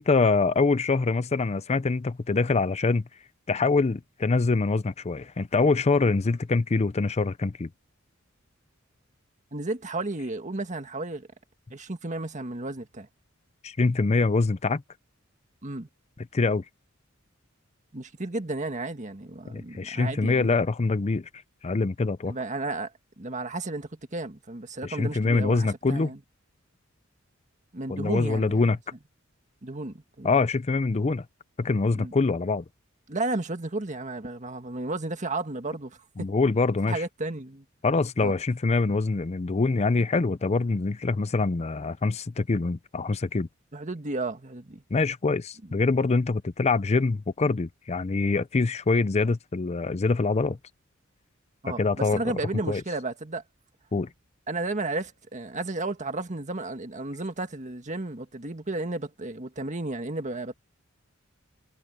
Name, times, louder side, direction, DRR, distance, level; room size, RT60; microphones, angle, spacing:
voice 1, 0.0-3.0 3.5-7.7 13.6-14.8 16.3-16.6 19.5-21.3 21.6-22.3 24.8-26.1 27.9-28.8 30.2-31.2 31.6-32.6 36.2-37.0 37.8-43.5 44.9-50.6 51.7-52.2 52.7-52.8 53.9-54.1, left 3 dB, 30° left, 0.5 m, -24 dB
voice 2, 9.5-11.3 11.7-13.1 15.6-15.9 17.9-20.6 22.2-22.9 23.2-26.2 27.7-28.6 29.6-30.3 31.9-32.1 33.1-36.0 36.9-37.6 38.2-38.3 43.7-44.8 51.6-53.4 54.5-60.5, right 2 dB, 35° right, 1.7 m, -33 dB
head